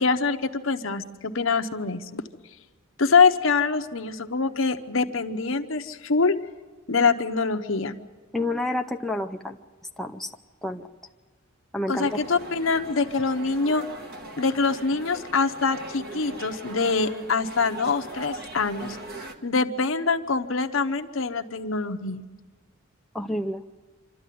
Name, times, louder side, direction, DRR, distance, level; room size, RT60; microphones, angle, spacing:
voice 1, 0.0-2.2 3.0-6.4 6.9-7.9 11.9-13.8 14.4-19.0 19.4-22.2, left 4 dB, 70° left, 6 dB, 1.0 m, -24 dB
voice 2, 8.3-9.6 10.0-10.3 10.6-10.9 11.7-12.2 23.1-23.6, left 1 dB, ahead, 3 dB, 0.6 m, -29 dB
sound 1, 12.0-19.3, right 2 dB, 50° right, 1.6 m, -40 dB
26.0 x 13.0 x 9.4 m, 1.4 s
head